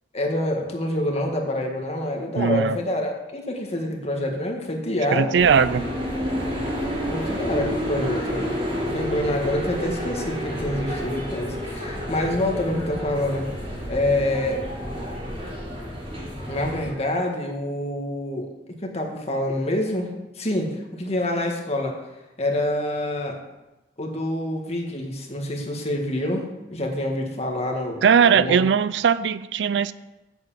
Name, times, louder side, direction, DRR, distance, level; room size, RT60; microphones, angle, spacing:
voice 1, 0.1-5.4 7.1-8.5 8.9-13.5 13.9-14.6 16.5-18.5 18.8-20.1 20.4-22.0 22.4-23.4 24.0-28.6, left 1 dB, 35° left, 1 dB, 1.8 m, -26 dB
voice 2, 2.3-2.8 5.1-5.8 28.0-29.9, right 6 dB, 80° right, 16 dB, 0.4 m, -19 dB
sound 1, 5.4-16.9, equal, 35° right, 4.5 m, -30 dB
8.0 x 7.0 x 7.5 m, 1.0 s
head